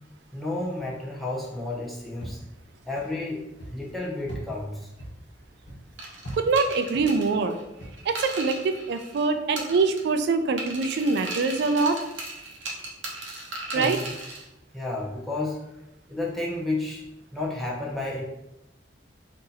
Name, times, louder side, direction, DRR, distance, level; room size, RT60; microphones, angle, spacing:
voice 1, 0.3-2.4 2.9-4.9 13.7-14.1 14.7-15.6 16.1-17.0 17.3-18.2, left 2 dB, ahead, -5 dB, 0.6 m, -31 dB
sound 1, 1.6-8.4, right 1 dB, 70° left, 1.0 m, -43 dB
sound 2, 6.0-9.3 9.6-10.2 10.6-14.4, right 2 dB, 90° right, 0.8 m, -37 dB
voice 2, 6.3-7.6 8.1-12.0 13.7-14.0, right 4 dB, 65° right, 8 dB, 0.3 m, -24 dB
2.7 x 2.6 x 3.9 m, 0.90 s
head